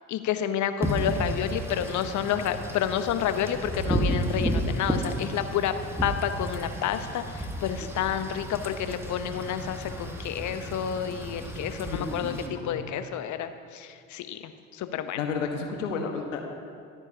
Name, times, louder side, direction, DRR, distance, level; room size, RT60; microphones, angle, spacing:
voice 1, 0.1-5.7 6.0-15.2, left 9 dB, 50° left, 10 dB, 1.0 m, -30 dB
Wind / Rain, 0.8-12.5, right 1 dB, 5° right, 1.7 m, -32 dB
voice 2, 11.9-12.9 15.2-16.4, left 5 dB, 80° left, 3 dB, 1.4 m, -32 dB
24.0 x 9.6 x 2.9 m, 2.4 s
hypercardioid pair, 55°, 38 cm